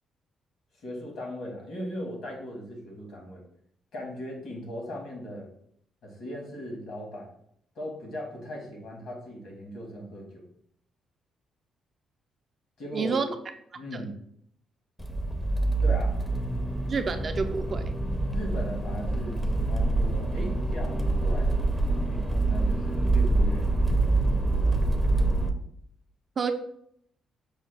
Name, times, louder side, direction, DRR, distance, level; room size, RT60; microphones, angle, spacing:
voice 1, 0.8-3.4 3.9-5.5 6.0-7.3 7.7-10.4 12.8-13.1 13.7-14.1 15.8-16.2 18.3-21.5 22.1-23.8 24.6-24.7, equal, 70° left, 0 dB, 1.5 m, -38 dB
voice 2, 12.9-13.3 13.9-14.0 16.9-17.9 26.4-26.5, right 5 dB, 45° right, 7 dB, 0.4 m, -29 dB
Accelerating revving vroom, 15.0-25.5, right 2 dB, 5° left, 0.5 m, -26 dB
5.4 x 2.2 x 3.2 m, 0.68 s
cardioid pair, 90°, 0 cm